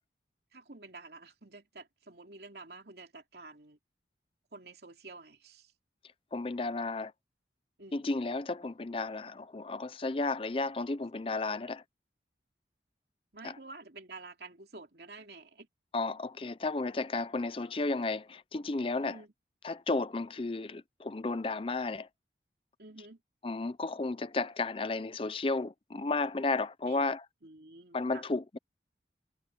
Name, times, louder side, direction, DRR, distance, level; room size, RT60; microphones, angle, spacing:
voice 1, 0.5-3.8 4.5-5.7 7.8-8.1 11.5-11.6 13.3-15.7 19.0-19.3 22.8-23.2 26.8-27.0 27.4-28.2, right 3 dB, 65° right, 2.8 m, -50 dB
voice 2, 6.3-7.1 7.9-11.8 13.4-13.5 15.9-19.2 19.6-22.1 23.4-27.2 27.9-28.6, left 3 dB, 30° left, 0.5 m, -33 dB
head